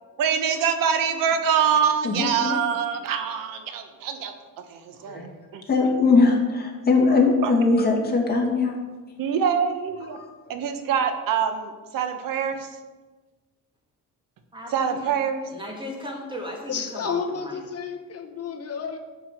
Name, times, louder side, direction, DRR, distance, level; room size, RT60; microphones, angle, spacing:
voice 1, 0.2-4.3 4.7-5.3 5.5-5.6 7.4-7.5 9.2-10.2 10.5-12.8 14.7-15.5, right 7 dB, 85° right, 7 dB, 1.2 m, -25 dB
voice 2, 2.0-2.6 5.1-5.3 5.7-8.7 10.1-10.6, left 4 dB, 30° left, -1 dB, 2.3 m, -21 dB
voice 3, 14.5-15.2 15.5-17.6, left 1 dB, 15° right, 0 dB, 2.3 m, -36 dB
voice 4, 16.7-19.0, left 6 dB, 50° left, 5 dB, 0.9 m, -31 dB
10.0 x 5.6 x 7.6 m, 1.3 s
cardioid pair, 155°, 32 cm